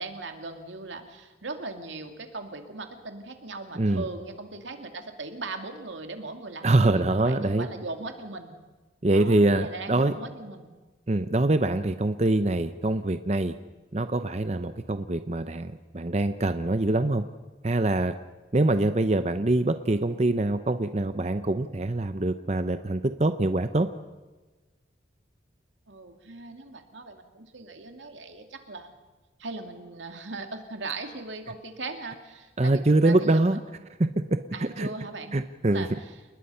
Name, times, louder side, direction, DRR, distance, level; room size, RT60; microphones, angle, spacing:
voice 1, 0.0-8.6 9.1-10.7 25.9-28.9 29.4-33.8 34.5-35.3 35.6-36.1, right 3 dB, 90° right, 5 dB, 2.5 m, -39 dB
voice 2, 6.6-7.7 9.0-10.1 11.1-13.5 13.9-17.2 17.6-18.1 18.5-23.9 32.6-33.6 34.0-34.4 34.8-34.9 35.3-35.9, right 2 dB, 35° right, 10 dB, 0.7 m, -24 dB
29.5 x 20.0 x 5.6 m, 1.2 s
head